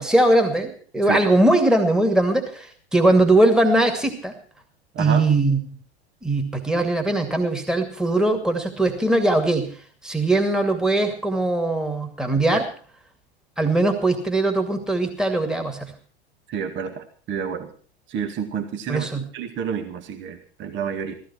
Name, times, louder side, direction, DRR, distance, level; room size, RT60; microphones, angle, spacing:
voice 1, 0.0-4.3 5.0-5.6 6.2-9.7 10.0-12.6 13.6-15.9 18.9-19.2, right 2 dB, ahead, 5 dB, 2.4 m, -20 dB
voice 2, 4.9-5.3 12.5-12.6 16.5-17.7 18.1-21.1, right 7 dB, 35° right, 6 dB, 2.0 m, -29 dB
15.5 x 15.5 x 4.5 m, 0.42 s
figure-of-eight pair, 90°, 33 cm